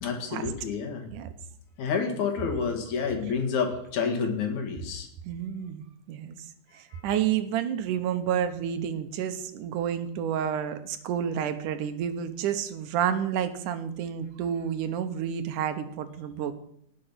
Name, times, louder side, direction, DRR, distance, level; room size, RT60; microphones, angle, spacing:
voice 1, 0.0-1.1 1.8-5.1 6.9-7.0, left 5 dB, 70° left, 3 dB, 3.5 m, -29 dB
voice 2, 5.2-6.4 6.7-16.5, right 9 dB, 90° right, 9 dB, 2.6 m, -30 dB
18.5 x 7.6 x 5.8 m, 0.70 s
omnidirectional pair, 3.5 m